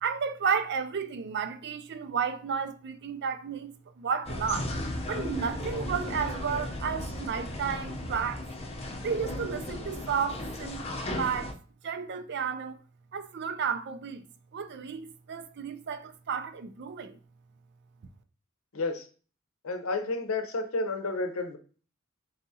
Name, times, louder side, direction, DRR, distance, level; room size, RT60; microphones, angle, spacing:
voice 1, 0.0-4.7 5.1-8.4 9.0-10.8 11.2-11.6 11.8-12.8 13.1-14.2 14.5-17.2, right 6 dB, 55° right, 0.4 m, -32 dB
sound 1, 4.2-11.5, left 1 dB, 30° left, 0.6 m, -35 dB
voice 2, 18.7-19.0 19.6-21.6, left 3 dB, 85° left, 0.7 m, -31 dB
4.0 x 3.5 x 2.7 m
head